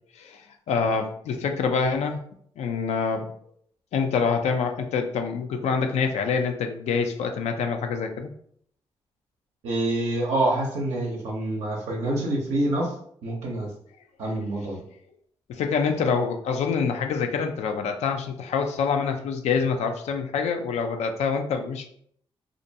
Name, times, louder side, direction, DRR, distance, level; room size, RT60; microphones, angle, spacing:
voice 1, 0.2-2.2 2.6-3.3 3.9-8.3 15.5-21.9, left 5 dB, 80° left, 5 dB, 0.4 m, -26 dB
voice 2, 9.6-12.9 13.2-13.7 14.2-14.8, right 1 dB, 90° right, -3 dB, 0.6 m, -26 dB
2.5 x 2.1 x 2.7 m, 0.65 s
supercardioid pair, 50°, 11 cm